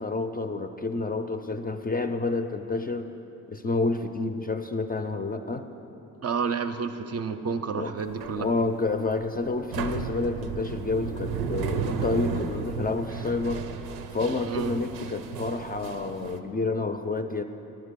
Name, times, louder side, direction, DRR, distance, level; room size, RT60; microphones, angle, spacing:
voice 1, 0.0-3.1 3.5-5.7 7.7-7.9 8.4-13.7 14.1-17.4, left 3 dB, 25° left, 7 dB, 0.4 m, -29 dB
voice 2, 6.2-8.5 14.4-14.7, right 5 dB, 45° right, 8 dB, 0.5 m, -30 dB
sound 1, 8.0-16.4, right 6 dB, 90° right, 0.5 m, -34 dB
10.5 x 4.6 x 6.7 m, 2.9 s
cardioid pair, 65°, 36 cm